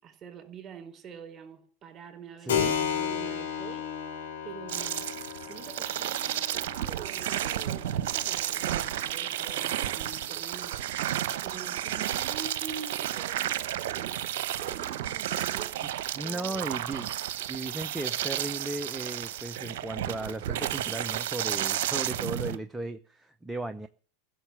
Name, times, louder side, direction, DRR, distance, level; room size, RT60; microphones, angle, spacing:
voice 1, 0.0-3.9 4.4-10.8 11.4-14.3 14.7-16.7, right 7 dB, 30° right, 4.2 m, -46 dB
voice 2, 2.4-2.7 16.1-17.1 17.5-23.9, right 2 dB, 10° right, 0.7 m, -36 dB
Keyboard (musical), 2.5-10.7, left 8 dB, 70° left, 5.1 m, -35 dB
sound 1, 4.7-22.6, right 12 dB, 60° right, 0.9 m, -32 dB
15.5 x 6.7 x 9.9 m
figure-of-eight pair, 90°, 0 cm